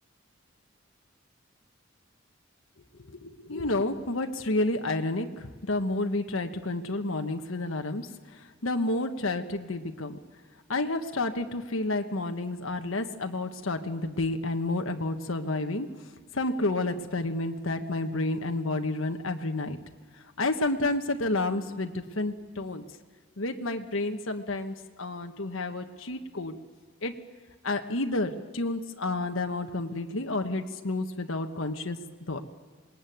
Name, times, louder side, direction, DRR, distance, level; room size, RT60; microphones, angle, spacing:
voice 1, 3.0-10.2 10.7-19.8 20.1-22.8 23.4-26.6 27.0-27.1 27.6-32.0 32.3-32.4, left 2 dB, 80° left, 5 dB, 1.4 m, -30 dB
26.5 x 20.5 x 9.3 m, 1.5 s
head